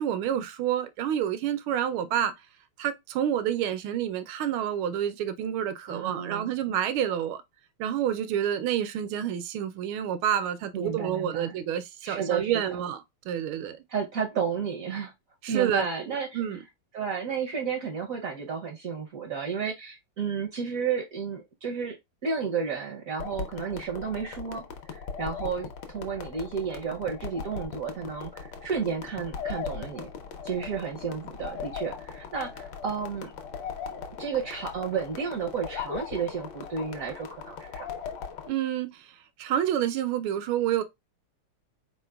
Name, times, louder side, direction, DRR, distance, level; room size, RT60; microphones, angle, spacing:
voice 1, 0.0-2.3 2.8-7.4 7.8-13.8 15.4-16.6 38.5-40.8, right 10 dB, 80° right, 1.4 m, -29 dB
voice 2, 5.9-6.5 10.7-11.6 12.0-12.6 13.9-15.1 15.5-16.4 16.9-22.0 22.2-30.1 30.4-33.3 33.9-37.9, right 6 dB, 65° right, 0.8 m, -32 dB
sound 1, 23.2-38.5, left 6 dB, 70° left, 1.4 m, -39 dB
4.2 x 3.8 x 2.2 m
omnidirectional pair, 2.3 m